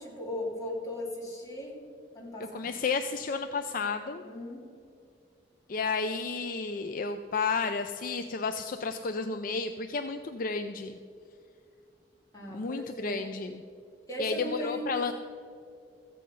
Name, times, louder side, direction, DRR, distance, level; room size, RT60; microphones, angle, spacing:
voice 1, 0.0-1.7 2.1-2.7 4.2-4.6 12.3-13.2 14.1-14.8, left 1 dB, 20° left, -5 dB, 3.2 m, -37 dB
voice 2, 2.5-4.2 5.7-11.0 12.5-13.6 14.2-15.1, left 4 dB, 50° left, 7 dB, 0.5 m, -32 dB
14.5 x 8.4 x 5.4 m, 2.4 s
head